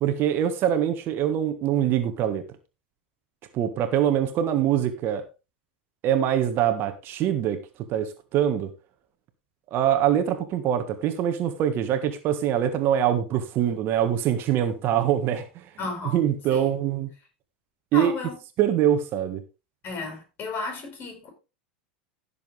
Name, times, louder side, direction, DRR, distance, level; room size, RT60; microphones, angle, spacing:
voice 1, 0.0-2.4 3.5-5.2 6.0-7.6 7.9-8.7 9.7-15.6 16.1-17.1 17.9-18.1 18.6-19.4, right 10 dB, 45° right, 1.7 m, -24 dB
voice 2, 15.8-16.2 16.5-16.7 17.9-18.4 19.8-21.3, left 3 dB, 40° left, 7.1 m, -33 dB
16.0 x 7.2 x 3.5 m
hypercardioid pair, 90°, 5 cm